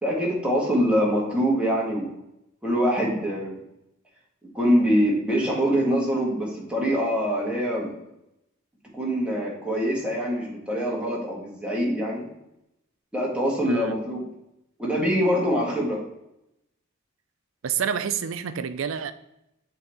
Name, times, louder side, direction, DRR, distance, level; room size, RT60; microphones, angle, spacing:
voice 1, 0.0-2.2 2.6-3.6 4.5-7.9 8.9-12.3 13.1-14.2 14.8-16.0, equal, 5° right, 1.7 m, -24 dB
voice 2, 17.6-19.1, right 7 dB, 80° right, 0.4 m, -28 dB
8.2 x 3.9 x 3.5 m
head